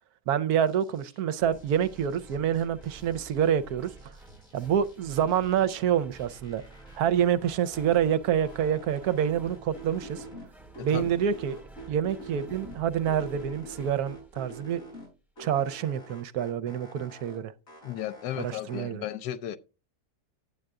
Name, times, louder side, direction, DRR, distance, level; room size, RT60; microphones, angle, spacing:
voice 1, 0.3-3.9 4.5-6.6 7.0-10.2 10.8-11.6 11.9-14.8 15.4-17.5 18.4-19.0, right 9 dB, 75° right, 1.1 m, -27 dB
sound 1, 0.7-1.2 1.5-3.5 3.8-5.8 6.1-8.1 8.4-10.5 10.7-12.8 13.1-15.1 15.4-17.4 17.7-18.8, right 1 dB, 55° left, 7.0 m, -46 dB
sound 2, 1.4-15.0, right 3 dB, ahead, 1.6 m, -50 dB
voice 2, 10.8-11.1 17.8-19.6, left 11 dB, 85° left, 1.2 m, -35 dB
10.5 x 7.8 x 3.6 m
omnidirectional pair, 1.7 m